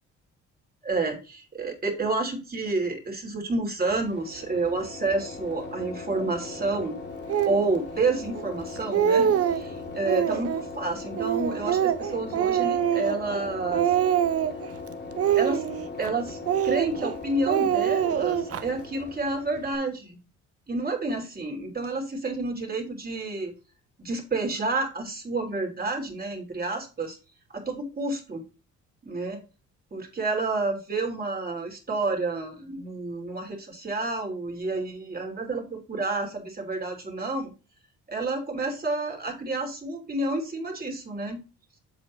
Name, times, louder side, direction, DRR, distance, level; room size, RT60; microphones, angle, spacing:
voice 1, 0.8-1.2 1.5-7.0 7.5-13.9 15.4-15.6 16.0-16.4 16.6-20.2 20.7-23.5 24.0-27.2 27.5-28.4 29.0-29.4 29.9-37.5 38.1-41.4, right 3 dB, 30° right, 2 dB, 2.8 m, -29 dB
sound 1, 3.8-19.8, left 3 dB, 35° left, 2.2 m, -39 dB
Speech, 7.3-7.6 8.3-8.4 8.8-9.7 10.0-10.7 11.2-13.5 13.7-14.7 15.2-16.1 16.5-17.1 17.5-18.6, right 9 dB, 50° right, 0.6 m, -24 dB
7.7 x 7.5 x 3.1 m, 0.32 s
cardioid pair, 90°, 30 cm